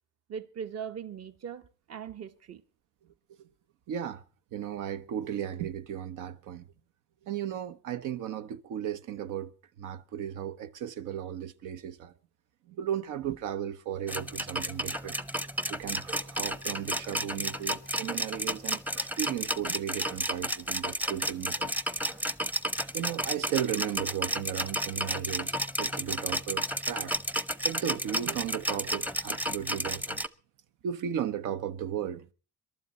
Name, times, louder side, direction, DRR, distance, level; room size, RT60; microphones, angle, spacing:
voice 1, 0.3-1.6 1.9-2.6, right 7 dB, 55° right, 1.2 m, -39 dB
voice 2, 3.9-4.2 4.5-6.6 7.3-9.5 9.8-12.1 12.7-15.2 15.7-21.7 22.9-27.1 27.6-30.2 30.8-32.3, right 10 dB, 90° right, 0.9 m, -35 dB
sound 1, 14.1-30.3, equal, 5° right, 0.6 m, -32 dB
22.5 x 12.0 x 4.1 m
cardioid pair, 90°, 30 cm